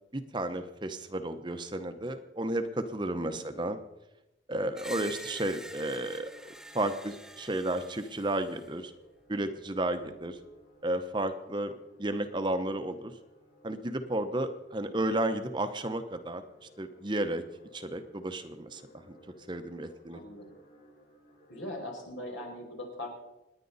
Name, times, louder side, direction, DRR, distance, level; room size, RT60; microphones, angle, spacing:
voice 1, 0.1-3.8 4.5-8.9 9.3-10.4 10.8-11.7 12.0-13.1 13.6-17.4 17.7-18.8 19.1-19.2 19.5-20.2, right 1 dB, 25° right, 8 dB, 0.8 m, -33 dB
sound 1, 4.6-21.8, left 1 dB, 45° left, 4.9 m, -58 dB
Screech, 4.7-8.8, equal, 5° right, 0.5 m, -47 dB
voice 2, 20.1-20.5 21.5-23.1, left 1 dB, 80° left, 0 dB, 4.9 m, -41 dB
27.5 x 10.0 x 4.1 m, 0.95 s
head